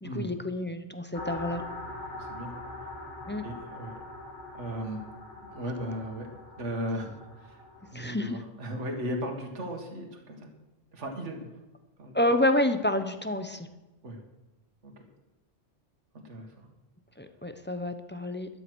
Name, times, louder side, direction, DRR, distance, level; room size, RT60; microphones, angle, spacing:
voice 1, 0.0-1.6 3.3-3.4 7.9-8.4 12.1-13.7 17.2-18.5, left 1 dB, 10° left, 8 dB, 0.8 m, -28 dB
sound 1, 1.1-7.9, left 2 dB, 65° left, 3.4 m, -43 dB
voice 2, 2.1-2.8 3.4-4.0 4.5-5.0 5.4-7.6 7.9-10.5 10.9-11.6 12.0-12.2 14.0-14.2 14.8-15.0 16.1-16.7, equal, 65° right, 2 dB, 2.2 m, -37 dB
12.5 x 11.5 x 6.3 m, 1.1 s
omnidirectional pair, 1.3 m